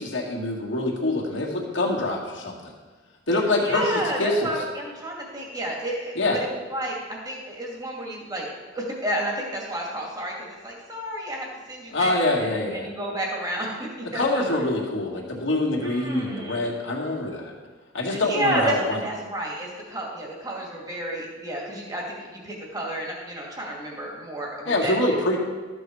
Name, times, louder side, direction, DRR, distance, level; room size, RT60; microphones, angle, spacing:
voice 1, 0.0-2.7 3.3-3.8 4.2-4.5 6.2-6.4 11.9-12.9 14.1-17.5 17.9-19.0 24.7-25.4, left 2 dB, 70° left, -1 dB, 2.1 m, -25 dB
voice 2, 3.6-8.5 8.7-12.1 12.4-14.4 15.8-16.7 18.1-25.3, right 1 dB, 20° right, -2 dB, 2.3 m, -31 dB
13.0 x 7.0 x 4.8 m, 1.4 s
head